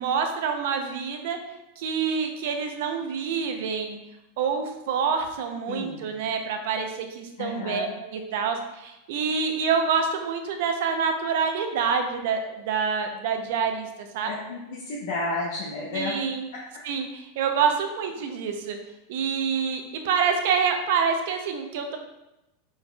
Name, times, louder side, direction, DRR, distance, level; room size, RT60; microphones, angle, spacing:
voice 1, 0.0-1.4 1.8-4.0 4.4-14.3 15.9-16.5 16.8-18.8 19.1-22.0, right 6 dB, 70° right, 5 dB, 0.7 m, -27 dB
voice 2, 5.7-6.1 7.4-7.9 14.2-16.1, left 2 dB, 70° left, -5 dB, 0.9 m, -32 dB
4.7 x 4.5 x 2.3 m, 0.94 s
supercardioid pair, 125°, 0 cm